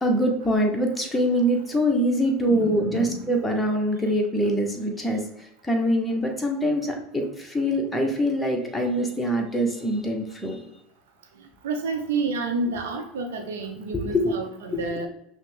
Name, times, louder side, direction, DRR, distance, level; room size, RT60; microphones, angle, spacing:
voice 1, 0.0-5.2 5.6-10.6 13.9-14.3 14.7-15.0, equal, 10° left, 1 dB, 1.1 m, -24 dB
voice 2, 2.4-3.3 11.6-15.1, right 3 dB, 70° right, 4 dB, 0.8 m, -29 dB
5.6 x 2.2 x 3.4 m, 0.79 s
figure-of-eight pair, 75°, 0 cm